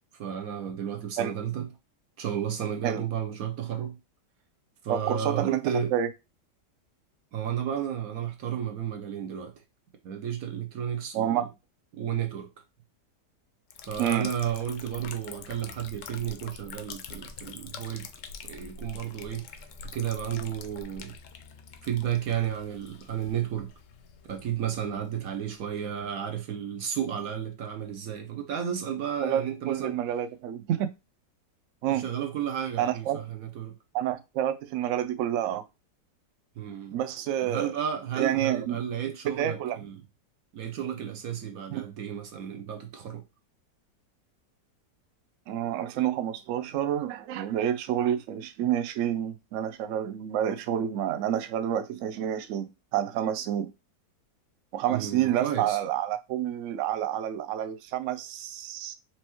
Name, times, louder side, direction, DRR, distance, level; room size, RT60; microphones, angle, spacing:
voice 1, 0.2-1.7 2.2-3.9 4.8-5.9 7.3-9.5 10.0-11.5 12.0-12.5 13.9-18.0 18.4-19.5 19.9-21.1 21.8-23.7 24.3-30.0 31.9-33.8 36.6-37.0 37.4-39.9 40.5-43.2 54.9-55.8, right 9 dB, 65° right, 0.9 m, -32 dB
voice 2, 4.9-6.1 11.1-11.5 14.0-14.3 29.2-30.9 31.8-32.0 32.8-33.2 33.9-35.7 36.9-37.7 38.2-38.8 39.2-39.8 41.7-41.8 45.5-53.7 54.7-58.9, right 10 dB, 80° right, 0.6 m, -29 dB
Liquid, 13.7-26.2, left 6 dB, 75° left, 0.7 m, -45 dB
4.5 x 3.0 x 2.9 m
omnidirectional pair, 1.9 m